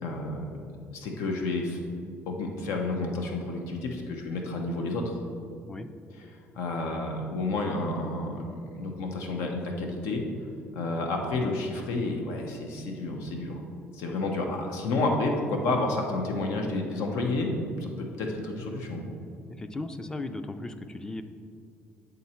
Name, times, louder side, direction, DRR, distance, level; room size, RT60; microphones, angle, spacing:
voice 1, 0.0-0.5 0.9-1.8 2.3-5.0 6.5-10.2 10.7-13.6 13.9-19.1, left 2 dB, 90° left, 2 dB, 0.8 m, -30 dB
voice 2, 19.5-21.2, left 2 dB, 15° left, 9 dB, 0.3 m, -36 dB
8.2 x 3.9 x 4.3 m, 2.3 s
cardioid pair, 140°, 5 cm